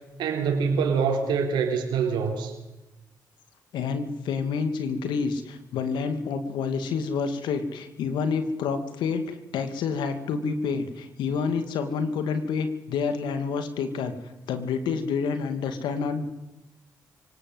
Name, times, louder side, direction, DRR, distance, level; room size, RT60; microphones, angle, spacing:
voice 1, 0.2-2.5, right 5 dB, 80° right, 2 dB, 3.8 m, -25 dB
voice 2, 3.7-14.1 14.5-16.3, left 5 dB, 85° left, 9 dB, 2.4 m, -28 dB
24.0 x 18.5 x 8.0 m, 1.0 s
supercardioid pair, 50°, 8 cm